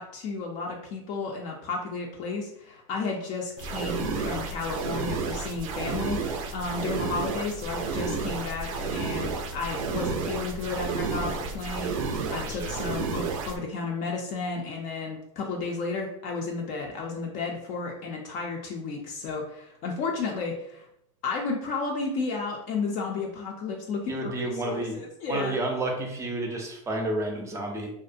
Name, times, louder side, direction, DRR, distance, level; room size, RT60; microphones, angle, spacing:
voice 1, 0.0-20.9 21.2-25.6, left 4 dB, 50° left, 0 dB, 0.5 m, -33 dB
sound 1, 3.6-13.6, right 4 dB, 80° right, 0.4 m, -31 dB
voice 2, 24.1-25.0 25.3-27.9, right 2 dB, 15° right, 2 dB, 0.5 m, -30 dB
2.4 x 2.1 x 2.5 m, 0.74 s
supercardioid pair, 125°, 17 cm